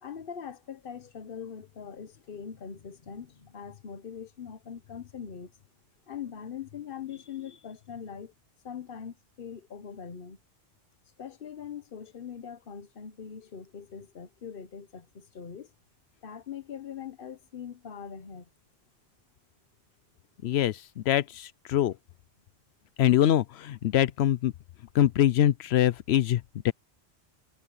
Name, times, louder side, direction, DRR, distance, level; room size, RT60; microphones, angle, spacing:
voice 1, 0.0-5.5 6.1-8.3 8.6-10.4 11.2-15.7 16.2-18.5, left 7 dB, 60° left, 1.1 m, -42 dB
voice 2, 20.4-21.9 23.0-24.5 24.9-26.7, left 11 dB, 85° left, 0.9 m, -24 dB
omnidirectional pair, 1.1 m